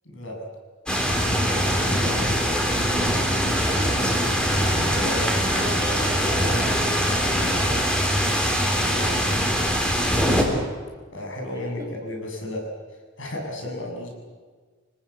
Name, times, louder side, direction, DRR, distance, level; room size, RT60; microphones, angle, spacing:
voice 1, 0.0-0.4 1.5-2.4 4.5-5.7 8.7-9.0 10.1-10.7 11.1-12.7 13.2-14.1, left 1 dB, 75° left, 1 dB, 7.6 m, -34 dB
sound 1, 0.9-10.4, equal, 5° left, 3.6 m, -22 dB
voice 2, 2.3-2.8 3.7-4.6 5.5-7.9 8.6-9.3 11.8-11.9, right 1 dB, 15° right, -7 dB, 4.7 m, -36 dB
27.5 x 18.5 x 8.5 m, 1.5 s
head